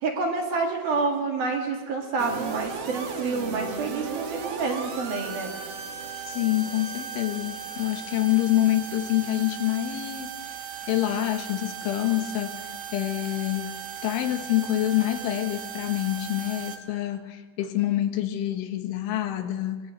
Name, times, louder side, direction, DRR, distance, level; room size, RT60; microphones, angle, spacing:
voice 1, 0.0-5.5, right 4 dB, 55° right, 1 dB, 3.9 m, -28 dB
sound 1, 2.2-16.8, right 7 dB, 70° right, 1.4 m, -37 dB
voice 2, 6.3-13.8 14.0-19.8, left 14 dB, 75° left, 7 dB, 3.7 m, -27 dB
23.5 x 21.0 x 8.1 m, 1.4 s
omnidirectional pair, 5.7 m